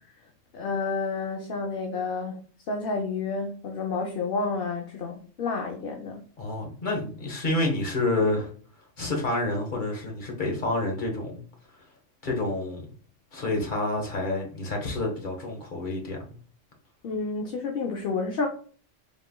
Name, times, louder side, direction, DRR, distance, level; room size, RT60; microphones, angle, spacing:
voice 1, 0.5-2.4 2.7-6.2 17.0-18.5, left 4 dB, 60° left, 0.8 m, -30 dB
voice 2, 6.4-8.5 9.0-11.4 12.2-12.8 13.3-16.3, left 2 dB, 40° left, 1.3 m, -28 dB
5.3 x 3.3 x 2.2 m
omnidirectional pair, 1.3 m